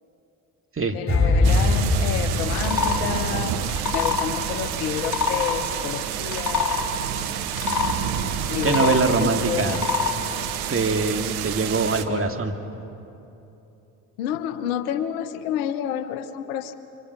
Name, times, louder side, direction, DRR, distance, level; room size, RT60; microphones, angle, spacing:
voice 1, 0.9-3.5 3.9-6.8 8.5-9.8 12.1-12.3 14.2-16.7, left 10 dB, 80° left, 12 dB, 1.0 m, -29 dB
sound 1, 1.1-4.3 4.5-4.8, left 2 dB, 30° left, 5.9 m, -23 dB
sound 2, 1.4-12.0, right 9 dB, 80° right, 1.2 m, -29 dB
sound 3, 2.6-3.0 3.6-4.3 4.9-5.6 6.2-6.9 7.5-7.9 8.5-9.1 9.6-10.1, left 6 dB, 45° left, 3.3 m, -25 dB
voice 2, 8.6-9.8 10.7-12.5, right 4 dB, 30° right, 4 dB, 2.2 m, -23 dB
26.5 x 25.0 x 5.9 m, 2.9 s
hypercardioid pair, 50°, 42 cm